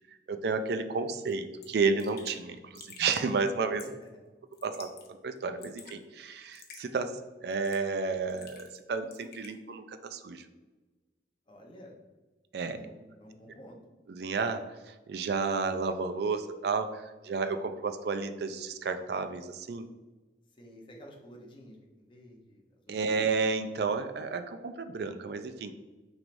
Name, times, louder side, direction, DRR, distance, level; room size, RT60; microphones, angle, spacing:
voice 1, 0.3-3.9 4.6-10.4 12.5-12.8 14.1-19.9 22.9-25.7, right 4 dB, 65° right, 9 dB, 0.4 m, -32 dB
Raindrop / Drip, 1.3-1.4 1.6-1.7 2.0-2.4 2.7-3.3 3.8-4.1 4.5-5.1 5.4-6.0 6.5-6.8 7.5-7.9 8.3-8.8 9.1-9.5, left 6 dB, 60° left, 0.7 m, -50 dB
voice 2, 11.5-11.9 12.8-13.8 20.6-23.0, equal, 30° left, -1 dB, 0.8 m, -51 dB
6.1 x 3.3 x 2.6 m, 1.2 s
head